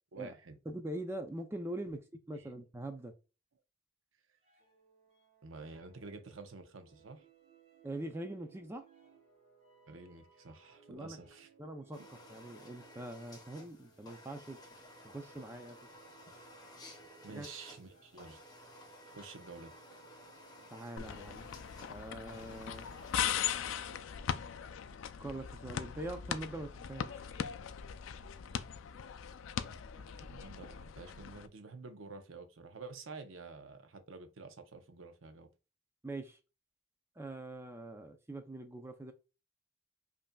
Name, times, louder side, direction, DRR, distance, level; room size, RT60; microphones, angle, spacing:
voice 1, 0.1-0.6 2.3-2.5 5.4-7.2 9.9-11.5 17.2-18.4 19.1-20.0 30.2-35.5, right 4 dB, 90° right, 0.7 m, -50 dB
voice 2, 0.7-2.0 2.3-3.1 7.8-8.8 10.9-11.2 11.6-12.0 12.3-14.6 15.0-15.8 17.3-17.5 20.7-21.5 21.9-22.8 25.2-27.3 36.0-36.4 37.2-39.1, right 1 dB, 10° right, 0.4 m, -43 dB
sound 1, 4.4-22.1, right 6 dB, 35° right, 1.3 m, -64 dB
sound 2, 11.9-23.6, left 1 dB, 20° left, 0.7 m, -55 dB
sound 3, 21.0-31.5, left 9 dB, 80° left, 0.4 m, -39 dB
5.2 x 2.7 x 2.2 m
head